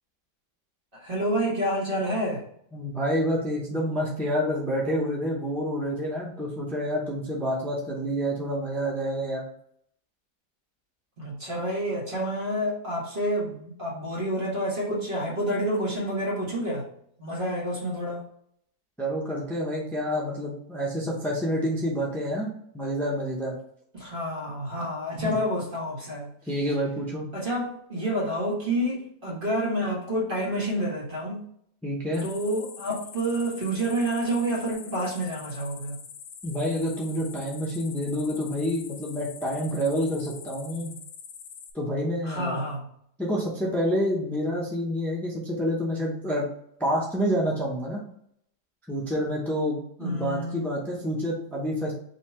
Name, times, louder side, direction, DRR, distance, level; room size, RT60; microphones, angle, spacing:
voice 1, 0.9-2.4 11.2-16.9 17.2-18.2 23.9-26.3 27.3-31.4 32.2-36.0 42.2-42.9 50.0-50.6, equal, 30° right, -4 dB, 1.6 m, -28 dB
voice 2, 2.7-9.4 19.0-22.5 22.7-23.5 25.2-25.4 26.5-27.3 31.8-32.2 36.4-41.0 41.7-42.6 43.2-46.4 46.8-48.0 48.9-51.9, equal, 5° left, -3 dB, 0.3 m, -28 dB
sound 1, 32.1-41.7, left 7 dB, 85° left, 1.3 m, -45 dB
4.1 x 2.8 x 4.4 m, 0.69 s
omnidirectional pair, 1.8 m